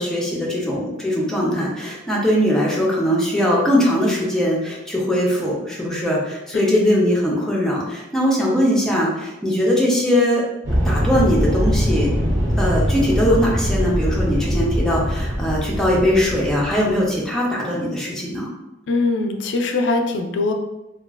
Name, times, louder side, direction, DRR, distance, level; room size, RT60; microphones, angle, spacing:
voice 1, 0.0-10.4 10.8-12.1 12.6-18.5, equal, 5° left, -4 dB, 0.6 m, -20 dB
voice 2, 6.5-6.9 18.9-20.5, left 3 dB, 75° left, 4 dB, 0.4 m, -22 dB
sound 1, 10.6-17.1, equal, 85° right, 0.8 m, -22 dB
2.9 x 2.3 x 2.4 m, 0.96 s
head